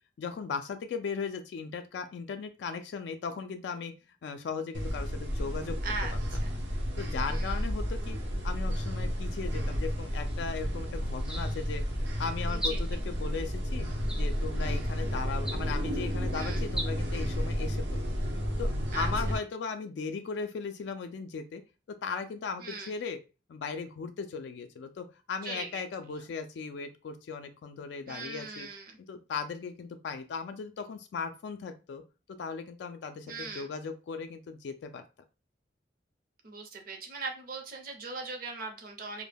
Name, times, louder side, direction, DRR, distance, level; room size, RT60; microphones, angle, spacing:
voice 1, 0.2-3.9 4.2-5.8 6.5-6.6 7.0-8.2 8.4-11.8 12.2-13.9 14.1-18.1 18.6-21.6 22.0-23.2 23.5-28.7 29.1-32.0 32.4-35.0, left 5 dB, 75° left, 8 dB, 0.3 m, -37 dB
sound 1, 4.7-19.4, equal, 90° right, 0.7 m, -32 dB
voice 2, 5.8-6.5 7.2-7.6 12.5-13.0 16.3-16.7 18.9-19.3 22.6-22.9 25.4-26.2 28.1-29.0 33.3-33.7 36.4-39.3, right 3 dB, 55° right, 4 dB, 0.6 m, -40 dB
sound 2, 10.2-10.5 11.2-11.8 12.5-13.1 14.0-14.6 15.4-15.9 16.6-16.9, right 1 dB, 5° right, 0.3 m, -39 dB
2.2 x 2.0 x 3.3 m, 0.30 s
head